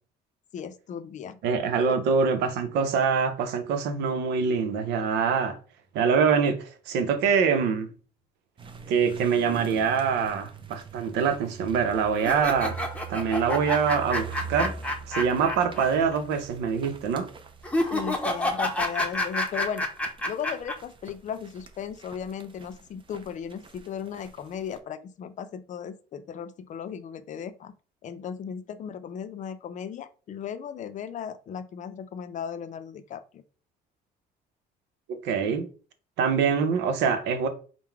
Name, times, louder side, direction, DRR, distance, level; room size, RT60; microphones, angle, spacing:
voice 1, 0.5-1.4 1.8-2.0 17.9-19.9 20.3-27.7 28.0-33.4, left 8 dB, 45° left, 0.5 m, -36 dB
voice 2, 1.4-5.6 5.9-7.9 8.9-12.8 13.1-14.7 15.1-17.3 35.1-35.7 36.2-37.5, right 6 dB, 90° right, 0.7 m, -24 dB
sound 1, 8.6-24.8, right 5 dB, 30° right, 0.5 m, -42 dB
sound 2, 12.2-15.9 16.1-16.2 17.6-20.7, left 1 dB, 5° left, 0.7 m, -28 dB
3.8 x 2.1 x 4.4 m
cardioid pair, 110°, 17 cm